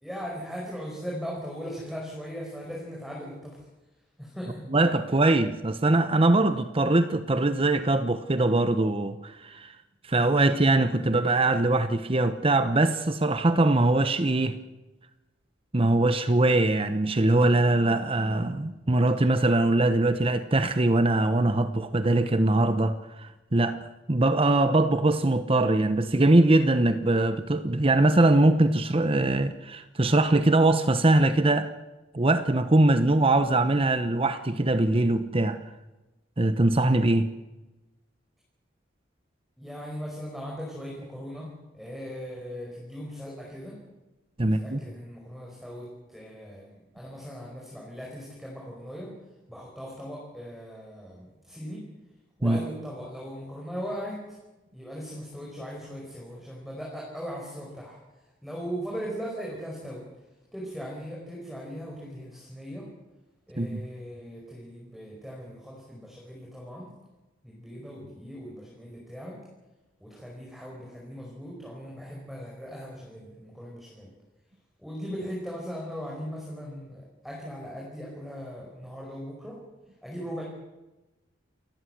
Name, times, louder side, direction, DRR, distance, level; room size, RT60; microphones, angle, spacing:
voice 1, 0.0-3.6 4.2-4.6 39.6-43.8 44.4-49.1 49.5-51.8 52.4-54.4 54.7-58.0 58.4-60.0 60.5-62.9 63.5-66.9 67.4-69.4 70.0-74.1 74.8-79.6 80.0-80.4, equal, ahead, 5.0 m, -39 dB
voice 2, 4.7-9.7 10.1-14.6 15.7-23.8 24.1-31.7 32.1-35.6 36.4-37.3 44.4-44.8 52.4-52.6 63.6-63.8, right 2 dB, 30° right, 0.9 m, -22 dB
29.0 x 14.5 x 8.0 m
head